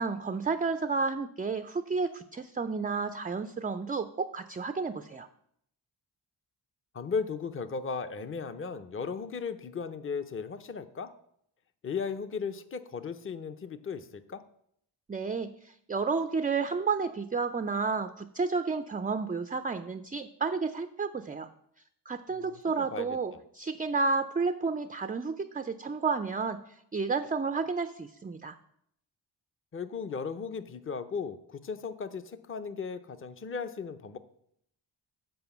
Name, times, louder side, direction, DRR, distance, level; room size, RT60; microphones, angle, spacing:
voice 1, 0.0-5.3 15.1-21.5 22.1-26.6 26.9-28.5, right 4 dB, 20° right, 10 dB, 0.3 m, -31 dB
voice 2, 6.9-11.1 11.8-14.4 22.3-23.2 29.7-34.2, left 5 dB, 25° left, 11 dB, 0.6 m, -36 dB
7.9 x 4.8 x 7.0 m, 0.71 s
cardioid pair, 65°, 49 cm